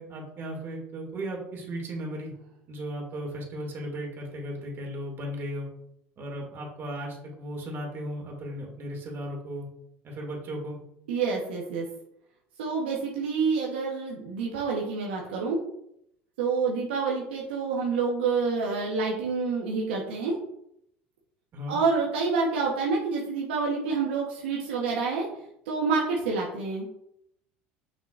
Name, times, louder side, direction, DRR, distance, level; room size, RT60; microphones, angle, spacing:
voice 1, 0.0-2.3 2.7-5.7 6.2-9.7 10.0-10.8 21.5-21.8, equal, 45° right, 0 dB, 2.4 m, -36 dB
voice 2, 11.1-11.9 12.6-15.6 16.4-20.4 21.7-25.3 25.7-26.8, right 4 dB, 85° right, -2 dB, 1.2 m, -28 dB
6.5 x 6.2 x 2.6 m, 0.76 s
hypercardioid pair, 85°, 6 cm